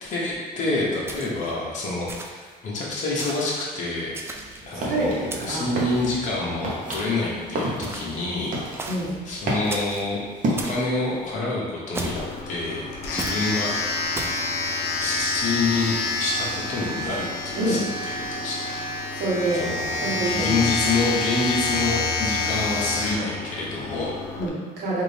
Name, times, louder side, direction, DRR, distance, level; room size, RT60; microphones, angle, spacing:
voice 1, 0.0-4.2 4.6-8.6 9.2-10.2 10.5-13.7 15.0-18.8 19.6-24.2, left 3 dB, 45° left, -6 dB, 1.0 m, -27 dB
sound 1, 1.1-1.5 2.1-2.5 3.2-3.5 4.1-4.7 5.3-5.7 6.9-7.3 7.8-8.2 8.8-9.1 9.7-10.1 10.6-10.8 11.9-12.4 13.2-13.4 14.1-14.4, right 2 dB, 15° right, 0.3 m, -35 dB
sound 2, 4.3-11.3, right 1 dB, 50° right, 0.8 m, -32 dB
voice 2, 4.7-5.7 8.9-9.2 17.6-17.8 19.1-19.6 20.0-20.7 24.4-25.0, right 2 dB, 85° right, -6 dB, 1.2 m, -26 dB
Domestic sounds home sounds, 12.0-24.5, left 3 dB, 75° left, 0.6 m, -28 dB
3.7 x 2.6 x 3.3 m, 1.5 s
cardioid pair, 110°, 17 cm